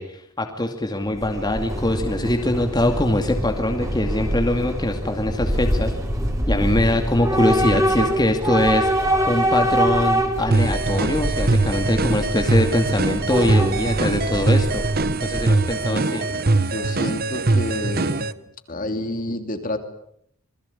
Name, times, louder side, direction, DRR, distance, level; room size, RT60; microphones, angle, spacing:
voice 1, 0.0-5.9 6.5-14.8 15.2-16.3, left 1 dB, 20° left, 4 dB, 2.4 m, -23 dB
Train / Subway metro underground, 1.0-15.9, equal, 15° right, 4.4 m, -25 dB
sound 1, 10.5-18.3, right 2 dB, 45° right, 1.1 m, -22 dB
voice 2, 15.9-18.3 18.7-19.8, left 1 dB, 40° left, 7 dB, 2.8 m, -29 dB
27.5 x 21.0 x 8.4 m, 0.70 s
head